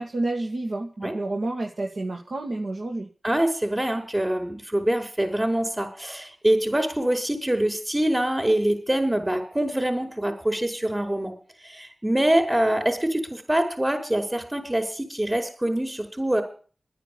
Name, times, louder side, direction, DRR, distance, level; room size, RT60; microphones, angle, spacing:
voice 1, 0.0-3.1, right 2 dB, 70° right, 1 dB, 2.0 m, -29 dB
voice 2, 3.2-11.3 11.6-16.4, right 1 dB, 25° right, 3 dB, 4.9 m, -24 dB
11.0 x 9.8 x 8.7 m, 0.39 s
cardioid pair, 45°, 0 cm